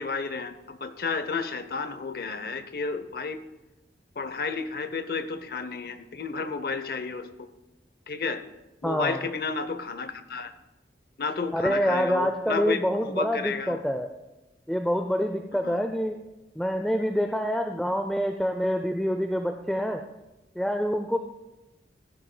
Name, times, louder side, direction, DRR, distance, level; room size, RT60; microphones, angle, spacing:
voice 1, 0.0-3.4 4.2-7.5 8.1-8.4 8.8-10.5 11.2-13.8 15.5-15.9, left 4 dB, 55° left, 10 dB, 0.7 m, -32 dB
voice 2, 8.8-9.2 11.5-14.1 14.7-16.2 16.6-20.0 20.6-21.2, equal, 5° left, 5 dB, 0.4 m, -26 dB
16.5 x 11.0 x 2.2 m, 1.0 s
head